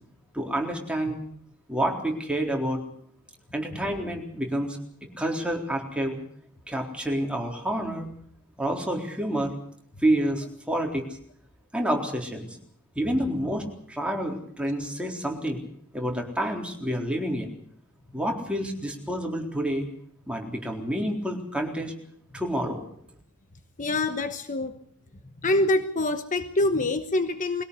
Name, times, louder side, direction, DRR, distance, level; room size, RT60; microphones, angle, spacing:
voice 1, 0.3-1.2 1.7-2.8 3.5-4.8 5.2-6.2 6.7-8.1 8.6-9.5 10.0-11.0 11.7-12.5 13.0-15.6 15.9-17.5 18.1-19.9 20.3-21.9 22.3-22.8, right 1 dB, 5° right, 1 dB, 3.9 m, -28 dB
voice 2, 23.8-24.8 25.4-27.6, left 2 dB, 35° left, 9 dB, 1.2 m, -25 dB
22.0 x 17.5 x 8.3 m, 0.62 s
head